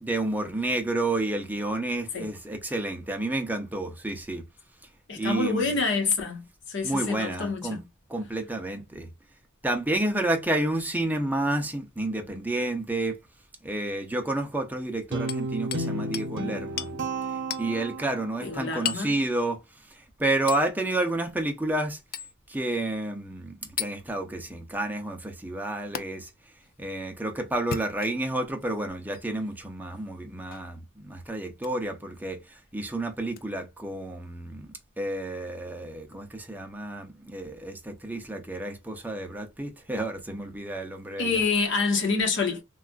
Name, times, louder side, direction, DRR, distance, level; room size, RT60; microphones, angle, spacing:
voice 1, 0.0-4.4 5.1-5.7 6.8-7.8 8.1-9.1 9.6-13.2 13.6-17.0 17.6-19.6 20.2-22.0 22.5-26.3 26.8-32.4 32.7-41.4, right 2 dB, 10° right, 0.6 m, -30 dB
voice 2, 5.1-6.4 6.7-7.8 12.3-12.4 18.4-19.1 41.2-42.6, left 4 dB, 60° left, 1.2 m, -27 dB
Guitar, 15.1-18.4, right 2 dB, 60° right, 0.8 m, -32 dB
Hammer, 15.3-15.9 16.1-16.3 16.8-17.0 17.5-17.7 18.9-19.1 20.5-20.7 22.1-22.3 23.8-24.0 26.0-26.1 27.6-28.3 29.1-29.2 30.5-30.7 31.6-31.8 33.3-33.4, left 9 dB, 45° left, 0.4 m, -34 dB
3.4 x 2.3 x 2.4 m
head